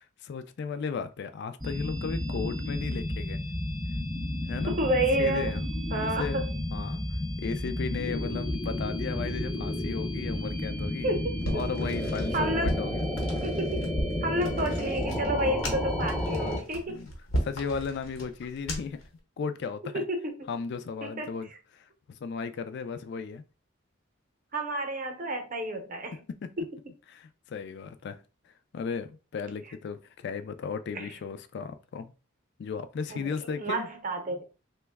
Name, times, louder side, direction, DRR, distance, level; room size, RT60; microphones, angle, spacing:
voice 1, 0.2-3.4 4.5-4.8 5.2-5.6 5.9-6.4 6.7-7.0 7.4-11.1 11.5-13.1 16.9-17.1 17.4-19.0 19.4-20.0 20.5-23.4 26.4-26.6 27.1-32.1 32.6-33.9, left 5 dB, 55° left, 0.3 m, -35 dB
sound 1, 1.6-16.6, left 1 dB, ahead, 0.5 m, -31 dB
voice 2, 4.7-5.5 5.9-6.5 11.0-11.6 12.3-12.8 13.4-13.8 14.2-17.0 19.9-20.3 21.0-21.3 24.5-26.2 30.9-31.1 33.1-33.3 33.6-34.4, right 1 dB, 40° right, 0.7 m, -30 dB
sound 2, 11.4-19.1, equal, 75° left, 0.9 m, -35 dB
2.9 x 2.2 x 3.4 m
head